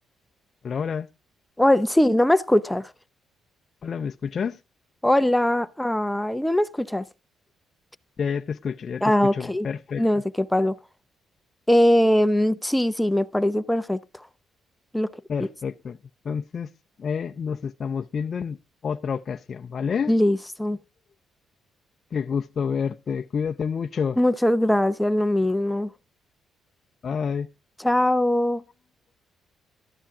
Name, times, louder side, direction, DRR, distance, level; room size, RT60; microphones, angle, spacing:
voice 1, 0.6-1.1 3.8-4.6 8.2-10.2 15.3-16.0 16.2-16.7 17.0-18.6 18.8-20.1 22.1-24.2 27.0-27.5, left 6 dB, 45° left, 0.6 m, -29 dB
voice 2, 1.6-2.9 5.0-7.0 9.0-9.7 10.0-10.8 11.7-14.0 14.9-15.1 20.1-20.8 24.2-25.9 27.8-28.6, left 1 dB, 5° left, 0.7 m, -21 dB
13.0 x 10.0 x 3.6 m
cardioid pair, 90°, 0 cm